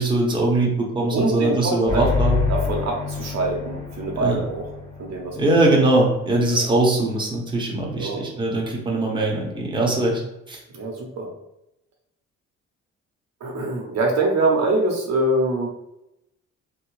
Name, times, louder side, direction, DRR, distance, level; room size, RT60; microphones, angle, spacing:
voice 1, 0.0-2.4 4.2-4.4 5.3-10.2 10.5-10.6, right 2 dB, 15° right, -2 dB, 0.9 m, -21 dB
voice 2, 1.1-2.0 2.5-4.7 5.0-5.4 6.5-6.6 7.9-8.3 10.7-11.3 13.4-15.7, right 2 dB, 60° right, 0 dB, 0.7 m, -24 dB
sound 1, 1.9-5.4, left 5 dB, 15° left, 1.1 m, -27 dB
3.3 x 2.1 x 3.1 m, 0.87 s
cardioid pair, 90°, 30 cm